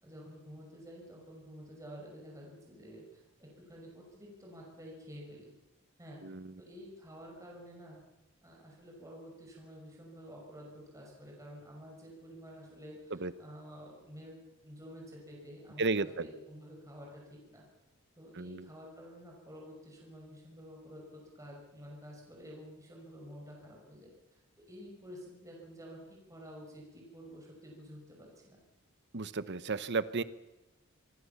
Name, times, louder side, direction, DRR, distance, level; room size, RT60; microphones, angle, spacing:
voice 1, 0.0-5.5 6.0-6.2 6.6-8.0 8.4-17.6 18.2-26.0 26.3-28.6, equal, 15° right, -2 dB, 5.8 m, -50 dB
voice 2, 6.2-6.6 13.1-13.3 15.8-16.3 18.3-18.7 29.1-30.2, right 3 dB, 55° right, 15 dB, 1.0 m, -33 dB
26.0 x 20.0 x 7.2 m, 0.98 s
head